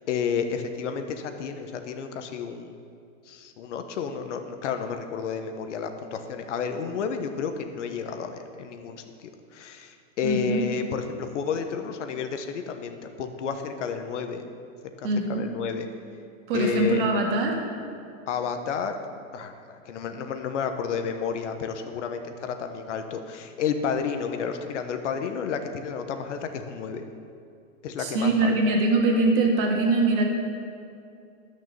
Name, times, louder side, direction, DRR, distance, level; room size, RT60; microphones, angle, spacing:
voice 1, 0.1-2.7 3.3-14.4 15.0-15.9 16.5-17.1 18.3-19.0 19.3-27.0 27.8-28.7, left 6 dB, 65° left, 7 dB, 1.2 m, -31 dB
voice 2, 10.2-10.6 15.0-15.5 16.5-17.6 28.0-30.2, right 2 dB, 40° right, 1 dB, 1.9 m, -23 dB
12.0 x 6.5 x 6.8 m, 2.5 s
hypercardioid pair, 155°, 39 cm